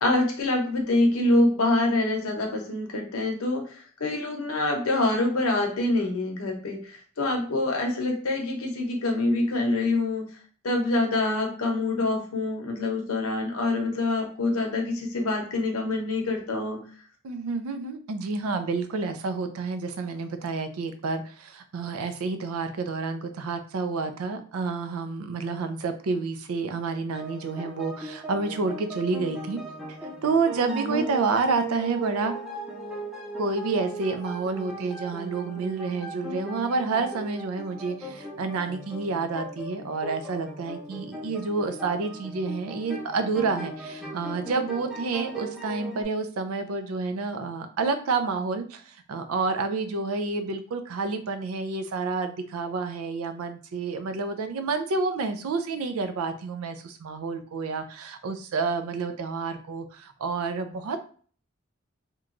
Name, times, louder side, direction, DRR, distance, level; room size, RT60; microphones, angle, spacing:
voice 1, 0.0-3.6 4.0-10.3 10.6-16.8 30.6-31.0, left 2 dB, 85° left, 2 dB, 0.7 m, -25 dB
voice 2, 17.2-29.6 30.2-32.3 33.4-61.0, right 4 dB, 90° right, 8 dB, 0.4 m, -29 dB
sound 1, 27.1-46.0, right 2 dB, ahead, 0.4 m, -38 dB
2.9 x 2.2 x 2.5 m, 0.44 s
head